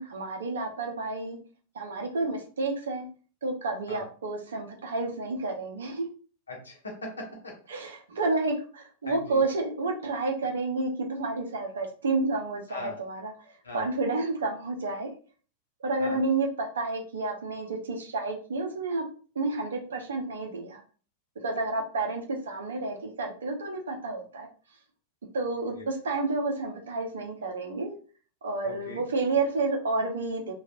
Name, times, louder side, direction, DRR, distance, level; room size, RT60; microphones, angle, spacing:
voice 1, 0.0-1.4 1.7-3.1 3.4-6.1 7.7-15.1 15.8-19.0 19.4-20.8 21.4-24.5 25.3-28.0 28.4-30.5, right 3 dB, 65° right, 2 dB, 0.7 m, -30 dB
voice 2, 6.5-7.5 9.0-9.4 12.7-13.0 13.6-13.9 16.0-16.2 25.7-25.8 28.6-29.0, left 2 dB, 75° left, -1 dB, 1.1 m, -39 dB
3.1 x 2.3 x 2.4 m, 0.40 s
figure-of-eight pair, 90°, 0 cm